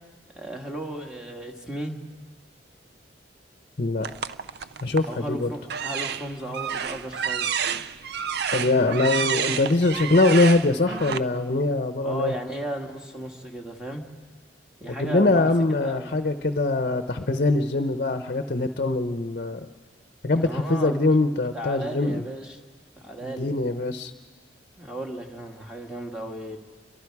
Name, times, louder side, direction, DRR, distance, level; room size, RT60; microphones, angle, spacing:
voice 1, 0.3-2.0 5.1-7.5 12.0-14.0 14.8-15.5 15.8-16.2 20.4-20.9 21.5-22.6 23.0-23.5 24.8-26.6, right 1 dB, 5° right, 2 dB, 1.8 m, -35 dB
voice 2, 3.8-4.1 4.8-5.5 8.5-12.3 14.9-19.7 20.2-22.2 23.2-24.1, left 2 dB, 50° left, 7 dB, 0.8 m, -23 dB
sound 1, 4.0-5.2 5.6-11.2, right 7 dB, 65° right, 0.5 m, -29 dB
29.0 x 23.0 x 4.8 m, 1.4 s
head